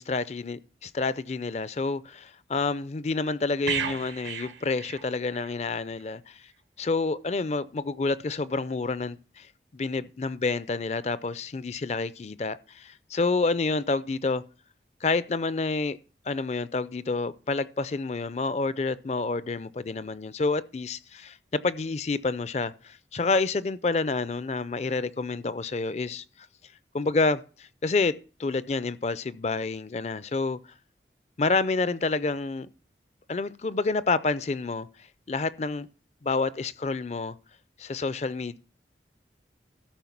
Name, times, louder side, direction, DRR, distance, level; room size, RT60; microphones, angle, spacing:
voice 1, 0.0-6.5 6.8-9.5 9.7-14.4 15.0-16.0 16.3-26.2 26.9-30.6 31.4-32.7 33.3-34.9 35.3-35.9 36.2-37.3 37.8-38.6, left 3 dB, 35° left, 0.4 m, -28 dB
sound 1, 3.7-5.6 5.9-6.1, right 7 dB, 90° right, 1.2 m, -34 dB
13.5 x 5.3 x 5.9 m
head